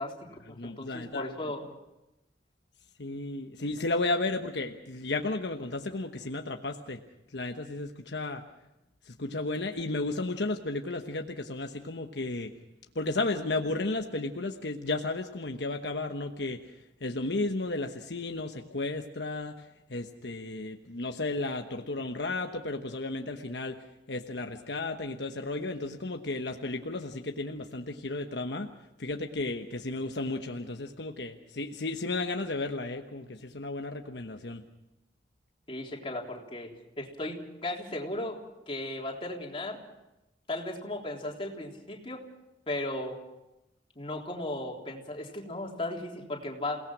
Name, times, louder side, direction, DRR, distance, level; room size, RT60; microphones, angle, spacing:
voice 1, 0.0-1.6 35.7-38.4 38.7-39.8 40.5-42.2 42.7-43.2 44.0-46.8, left 1 dB, 30° left, -1 dB, 3.6 m, -36 dB
voice 2, 0.5-1.3 3.0-7.0 7.3-8.4 9.0-12.5 12.9-16.7 17.0-23.8 24.1-28.7 29.0-34.6, left 2 dB, 70° left, 4 dB, 1.2 m, -33 dB
28.5 x 18.0 x 6.1 m, 0.95 s
head